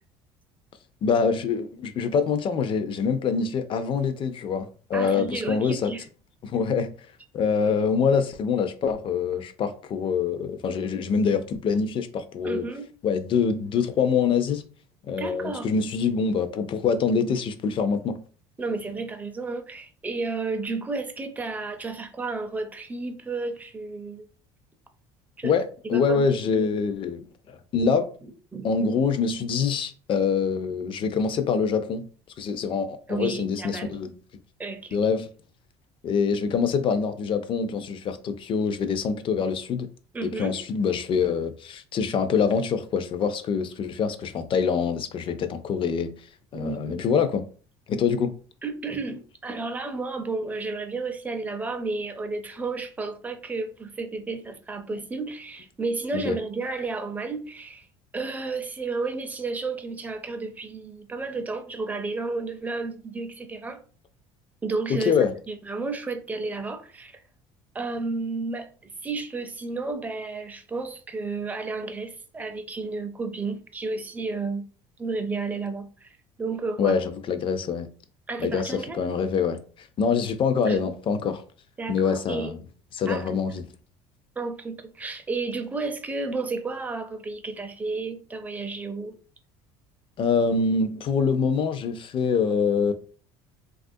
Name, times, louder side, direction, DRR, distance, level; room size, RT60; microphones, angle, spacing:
voice 1, 1.0-5.9 6.4-6.9 7.3-12.6 13.0-14.6 15.1-18.2 25.4-28.1 28.6-32.0 32.4-34.1 34.9-35.3 36.0-39.9 40.2-46.1 46.5-47.4 47.9-48.3 56.2-56.4 64.9-65.3 76.8-77.9 78.4-79.6 80.0-81.4 81.9-82.6 82.9-83.7 90.2-92.9, left 5 dB, 40° left, 0.4 m, -25 dB
voice 2, 4.9-6.1 12.4-12.8 15.2-15.7 18.6-24.3 25.4-25.5 25.8-26.7 28.5-28.7 33.1-34.0 34.6-35.0 40.1-40.6 46.5-47.0 48.6-57.9 58.1-63.8 64.6-67.2 67.7-68.7 69.0-74.7 75.0-77.0 78.3-79.0 80.7-80.8 81.8-82.6 83.1-83.4 84.4-89.2, right 3 dB, 10° right, 0.5 m, -32 dB
3.2 x 2.4 x 2.6 m
cardioid pair, 115°, 13 cm